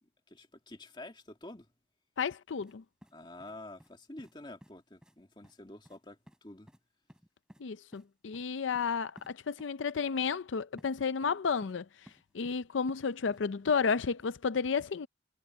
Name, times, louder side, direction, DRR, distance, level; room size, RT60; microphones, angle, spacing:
voice 1, 0.0-1.7 3.1-6.7, left 2 dB, 25° left, 2.3 m, -49 dB
voice 2, 2.2-2.8 7.6-12.1 12.3-15.1, left 5 dB, 90° left, 0.5 m, -32 dB
sound 1, 2.6-2.8 3.0-3.9 4.2-4.3 4.6-4.7 5.0-5.2 5.4-5.6 5.8-6.0 6.3-6.4 6.7-6.8 7.1-7.6 7.9-8.1 8.3-8.5 8.7-8.9 9.2-9.3 9.6-9.7 10.8-10.9 11.2-11.8 12.1-12.6 12.9-13.4 13.7-13.8, equal, 5° right, 3.7 m, -56 dB
head